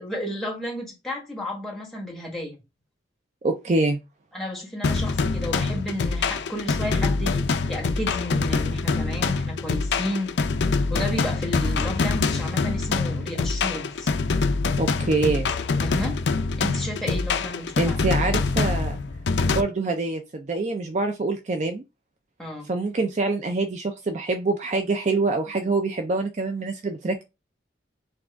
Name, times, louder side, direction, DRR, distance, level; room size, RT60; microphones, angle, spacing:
voice 1, 0.0-2.5 4.3-10.3 10.9-14.1 15.8-16.2 16.6-18.0 22.4-22.7, left 1 dB, ahead, 1.4 m, -32 dB
voice 2, 3.4-4.0 14.8-15.5 17.8-19.0 19.5-21.8 22.7-27.2, right 3 dB, 40° right, 0.4 m, -25 dB
sound 1, 4.8-19.6, left 4 dB, 70° left, 0.4 m, -25 dB
6.0 x 2.3 x 3.4 m
head